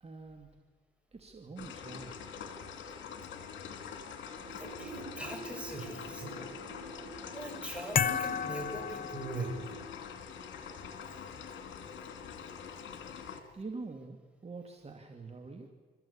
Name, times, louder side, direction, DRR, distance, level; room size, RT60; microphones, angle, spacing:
voice 1, 0.0-0.5 1.1-2.2 13.5-15.7, right 3 dB, 30° right, 4 dB, 2.3 m, -45 dB
sound 1, 1.6-13.4, left 7 dB, 70° left, 2.7 m, -45 dB
sound 2, 4.4-9.8, right 4 dB, 70° right, 3.9 m, -49 dB
voice 2, 4.6-6.3 7.3-9.6, right 2 dB, 5° right, 2 dB, 6.5 m, -41 dB
sound 3, 7.9-9.9, left 8 dB, 45° left, 0.8 m, -32 dB
27.5 x 14.0 x 8.6 m, 1.4 s
cardioid pair, 90°, 20 cm